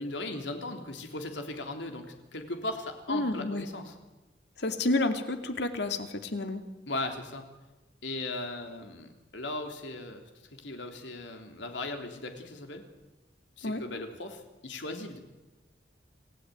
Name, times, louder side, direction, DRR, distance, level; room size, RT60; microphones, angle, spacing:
voice 1, 0.0-4.0 6.9-7.5 8.0-12.9 13.6-15.2, left 2 dB, 85° left, 5 dB, 3.4 m, -38 dB
voice 2, 3.1-3.7 4.6-6.6 13.6-13.8, left 2 dB, 70° left, 7 dB, 2.4 m, -30 dB
28.0 x 16.5 x 9.5 m, 1.1 s
head